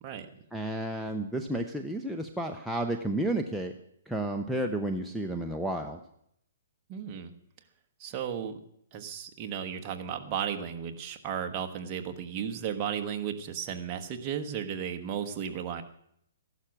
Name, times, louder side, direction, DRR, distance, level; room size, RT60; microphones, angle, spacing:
voice 1, 0.0-0.4 6.9-7.3 8.0-8.5 8.9-15.8, right 8 dB, 25° right, 5 dB, 1.3 m, -34 dB
voice 2, 0.5-3.7 4.1-6.0, right 1 dB, ahead, 1 dB, 0.7 m, -31 dB
14.5 x 11.5 x 6.0 m, 0.72 s
hypercardioid pair, 160°, 0 cm